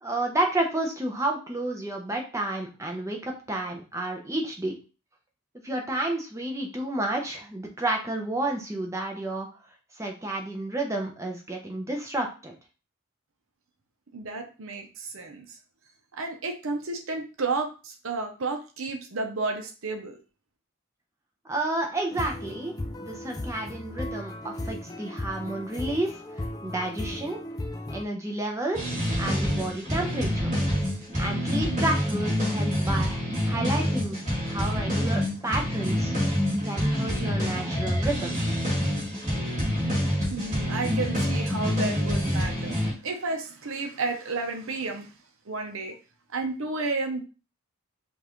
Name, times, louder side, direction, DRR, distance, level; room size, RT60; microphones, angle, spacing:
voice 1, 0.0-4.8 5.6-9.5 9.9-12.5 21.4-22.7 23.0-27.4 27.9-30.5 31.2-36.1 36.6-38.4, right 2 dB, 15° right, 1 dB, 0.7 m, -31 dB
voice 2, 14.1-15.6 16.1-20.2 40.3-45.2 45.5-46.0 46.3-47.2, right 3 dB, 65° right, 4 dB, 0.7 m, -32 dB
sound 1, 22.1-28.0, left 1 dB, 15° left, 0.3 m, -36 dB
sound 2, 28.7-42.9, equal, 35° right, 1.8 m, -27 dB
5.2 x 2.5 x 3.0 m, 0.33 s
head